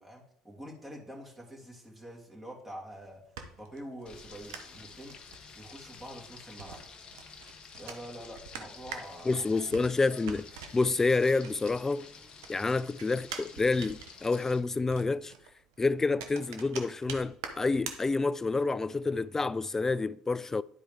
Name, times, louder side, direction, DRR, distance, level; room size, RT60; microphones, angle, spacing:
voice 1, 0.0-3.2 3.6-5.2 5.5-6.8 7.8-9.6, equal, 10° right, 2.6 m, -46 dB
sound 1, 2.9-12.1 12.4-18.6, right 7 dB, 85° right, 0.8 m, -46 dB
Frying (food), 4.1-14.6, left 5 dB, 45° left, 1.1 m, -50 dB
voice 2, 9.3-10.5 10.7-12.1 12.5-15.3 15.8-20.6, left 3 dB, 20° left, 0.3 m, -28 dB
11.0 x 4.6 x 3.6 m
hypercardioid pair, 65°, 2 cm